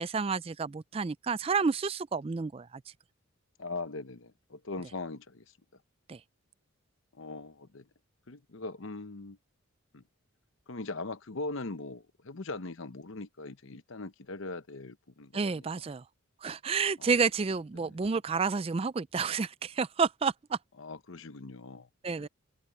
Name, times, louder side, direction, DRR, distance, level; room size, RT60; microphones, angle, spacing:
voice 1, 0.0-2.7 6.1-6.2 15.3-16.0 16.4-20.6 22.0-22.3, right 5 dB, 25° right, 0.3 m, -30 dB
voice 2, 3.6-5.5 7.1-7.9 8.3-9.4 9.9-10.0 10.7-15.8 17.0-17.1 17.7-18.1 20.8-21.9 22.2-22.3, left 3 dB, 65° left, 0.9 m, -41 dB
head